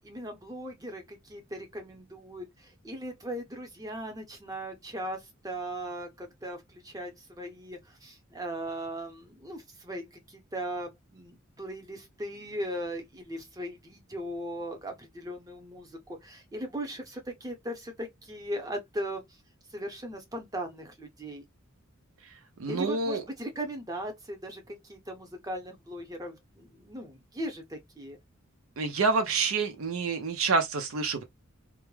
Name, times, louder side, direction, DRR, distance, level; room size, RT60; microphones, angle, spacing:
voice 1, 0.0-19.2 19.7-21.4 22.7-28.2, right 1 dB, 20° right, 0.7 m, -38 dB
voice 2, 22.6-23.2 28.8-31.2, right 4 dB, 80° right, 0.5 m, -27 dB
2.2 x 2.1 x 3.1 m
head